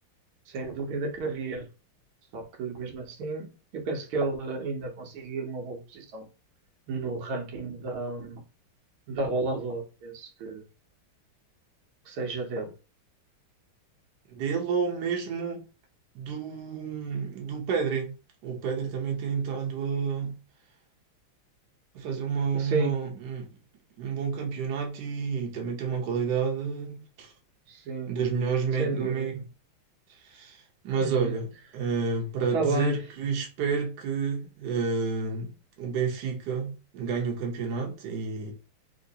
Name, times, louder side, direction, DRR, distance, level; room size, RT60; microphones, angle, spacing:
voice 1, 0.5-1.7 2.3-6.3 6.9-8.4 9.1-10.6 12.1-12.7 22.5-23.0 27.7-28.1 28.8-29.4 31.0-31.3 32.5-33.0, right 3 dB, 85° right, 1.7 m, -32 dB
voice 2, 14.3-15.6 16.1-18.1 18.4-20.4 21.9-23.5 24.0-27.3 28.1-29.4 30.1-38.5, right 5 dB, 60° right, 1.3 m, -30 dB
3.6 x 2.9 x 2.7 m
omnidirectional pair, 2.3 m